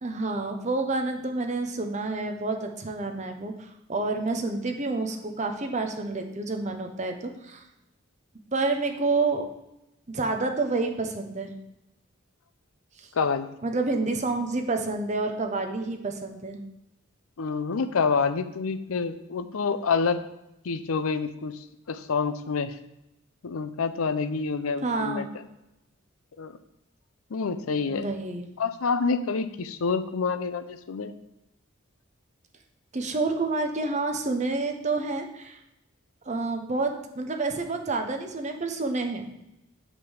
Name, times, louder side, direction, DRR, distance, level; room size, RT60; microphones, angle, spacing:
voice 1, 0.0-3.5 3.9-7.6 8.5-9.5 10.1-11.5 13.0-13.1 13.6-16.6 24.8-25.3 27.9-28.5 32.9-35.6 36.3-39.3, right 3 dB, 35° right, 4 dB, 0.9 m, -28 dB
voice 2, 13.1-13.6 17.4-20.2 20.6-21.5 21.9-22.8 23.4-25.2 26.4-26.5 27.3-28.1 28.6-31.1, left 5 dB, 85° left, 11 dB, 0.6 m, -27 dB
8.2 x 3.7 x 6.4 m, 0.88 s
head